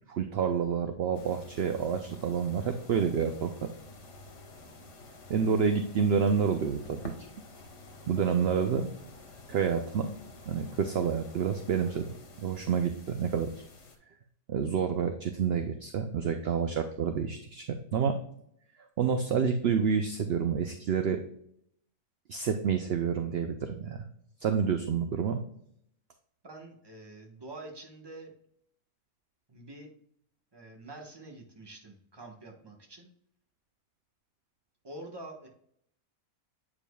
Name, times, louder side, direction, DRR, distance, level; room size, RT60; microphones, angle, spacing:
voice 1, 0.1-3.7 5.3-7.1 8.1-8.9 9.5-10.1 10.5-12.1 12.4-13.5 14.5-18.2 19.0-21.2 22.3-24.1 24.4-25.4, right 6 dB, 60° right, 6 dB, 0.7 m, -28 dB
sound 1, 1.1-14.0, left 2 dB, 55° left, 1.4 m, -50 dB
voice 2, 26.4-28.3 29.5-29.9 30.5-33.1 34.8-35.5, right 2 dB, 20° right, 2 dB, 1.1 m, -46 dB
8.8 x 4.9 x 2.2 m, 0.70 s
omnidirectional pair, 1.4 m